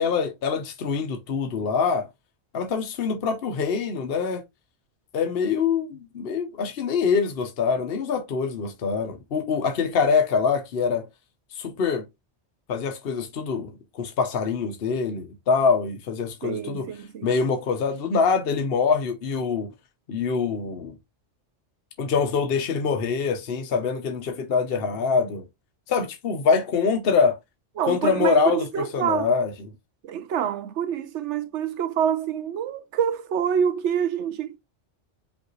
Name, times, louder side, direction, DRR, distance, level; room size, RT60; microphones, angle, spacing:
voice 1, 0.0-2.1 2.5-4.4 5.1-11.1 11.5-12.0 12.7-16.9 17.2-19.7 20.1-20.9 22.0-25.4 25.9-27.4 27.9-29.5, left 5 dB, 60° left, 0.9 m, -24 dB
voice 2, 16.4-17.3 27.8-29.3 30.0-34.6, right 8 dB, 80° right, 1.0 m, -26 dB
5.5 x 2.5 x 3.0 m
omnidirectional pair, 1.2 m